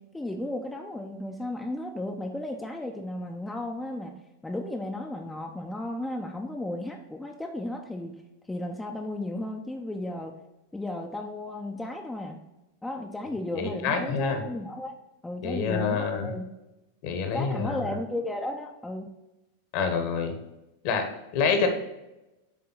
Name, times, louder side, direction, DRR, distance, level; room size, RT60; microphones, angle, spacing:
voice 1, 0.0-4.1 4.4-8.2 8.5-10.4 10.7-12.4 12.8-14.9 15.2-16.4 17.3-19.1, left 1 dB, 5° left, 2 dB, 0.6 m, -34 dB
voice 2, 13.5-14.4 15.4-16.3 17.0-17.8 19.7-20.3 20.8-21.1 21.3-21.7, left 5 dB, 45° left, 5 dB, 1.2 m, -27 dB
8.5 x 3.7 x 4.0 m, 0.98 s
figure-of-eight pair, 90°, 0 cm